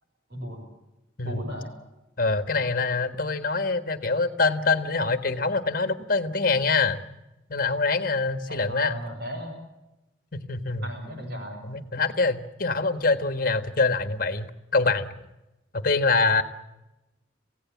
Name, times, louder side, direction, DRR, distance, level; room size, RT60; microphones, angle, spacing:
voice 1, 0.3-0.7 1.2-1.7 8.5-9.6 10.8-11.6, equal, 50° right, 3 dB, 6.6 m, -35 dB
voice 2, 2.2-7.0 7.5-9.0 10.3-10.8 11.7-15.1 15.7-16.4, left 3 dB, 45° left, 10 dB, 1.6 m, -25 dB
27.5 x 17.0 x 7.4 m, 0.98 s
head